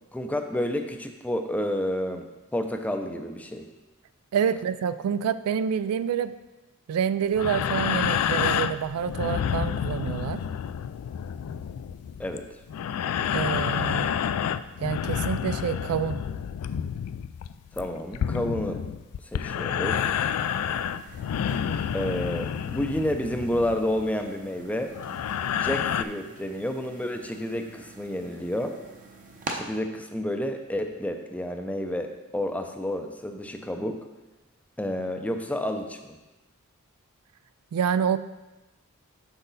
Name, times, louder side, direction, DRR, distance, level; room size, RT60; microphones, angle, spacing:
voice 1, 0.1-2.2 2.5-3.7 12.2-12.4 17.7-18.8 19.3-20.1 21.9-24.9 25.5-28.7 29.5-34.0 34.8-36.2, left 1 dB, 5° left, 5 dB, 0.5 m, -30 dB
voice 2, 4.3-6.3 6.9-10.4 13.3-14.1 14.8-16.2 37.7-38.2, right 7 dB, 75° right, 14 dB, 0.3 m, -27 dB
sound 1, 7.3-24.2 24.9-26.0, left 8 dB, 75° left, 0.3 m, -29 dB
sound 2, 19.9-29.6, right 3 dB, 35° right, 0.8 m, -45 dB
6.5 x 6.1 x 4.0 m, 1.1 s
head